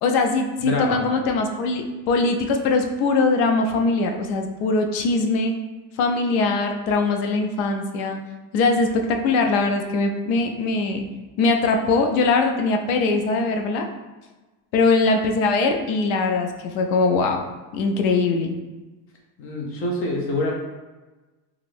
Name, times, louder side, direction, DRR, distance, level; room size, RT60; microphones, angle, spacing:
voice 1, 0.0-5.5 6.0-8.2 8.5-11.0 11.4-13.9 14.7-17.4 17.7-18.5, left 3 dB, 90° left, 4 dB, 0.6 m, -21 dB
voice 2, 0.6-1.0 19.4-20.5, left 2 dB, 35° left, 0 dB, 0.5 m, -25 dB
2.5 x 2.4 x 3.3 m, 1.2 s
cardioid pair, 160°, 41 cm